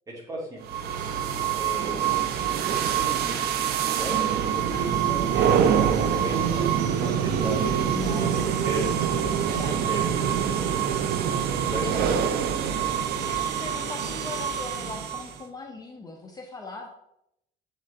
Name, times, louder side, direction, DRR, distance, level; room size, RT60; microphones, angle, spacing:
voice 1, 0.1-0.6 1.5-2.0 2.7-8.4 8.6-9.1 9.9-10.3 11.7-12.5, right 1 dB, 20° right, -4 dB, 2.8 m, -36 dB
sound 1, 0.7-15.4, right 8 dB, 75° right, 0.7 m, -25 dB
sound 2, 0.9-8.3, right 3 dB, 50° right, 1.6 m, -49 dB
voice 2, 4.7-5.0 7.9-8.7 9.4-9.9 11.7-12.2 13.1-16.9, left 3 dB, 20° left, 1 dB, 0.8 m, -40 dB
7.5 x 3.9 x 4.2 m, 0.81 s
cardioid pair, 110°, 17 cm